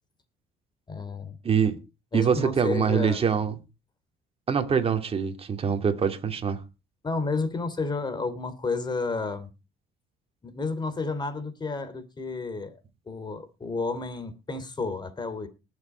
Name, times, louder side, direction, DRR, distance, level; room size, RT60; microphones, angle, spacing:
voice 1, 0.9-1.4 2.1-3.2 7.0-9.5 10.4-12.8 13.1-15.5, left 3 dB, 25° left, 3.1 m, -31 dB
voice 2, 1.4-1.8 2.1-3.5 4.5-6.6, right 7 dB, 35° right, 2.5 m, -24 dB
19.5 x 7.4 x 4.5 m
cardioid pair, 110°, 17 cm